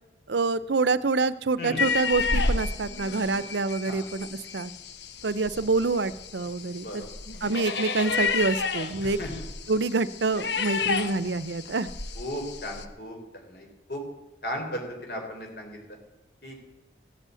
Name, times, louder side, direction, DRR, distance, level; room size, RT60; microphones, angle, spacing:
voice 1, 0.3-4.7 5.2-7.0 7.4-9.2 9.7-11.9, right 3 dB, 80° right, 16 dB, 0.7 m, -26 dB
sound 1, 1.8-12.9, left 4 dB, 75° left, 1.1 m, -31 dB
voice 2, 12.2-13.2 13.5-14.0 14.4-15.8 16.4-16.6, equal, 60° left, 2 dB, 4.3 m, -35 dB
16.0 x 8.3 x 8.4 m, 0.98 s
head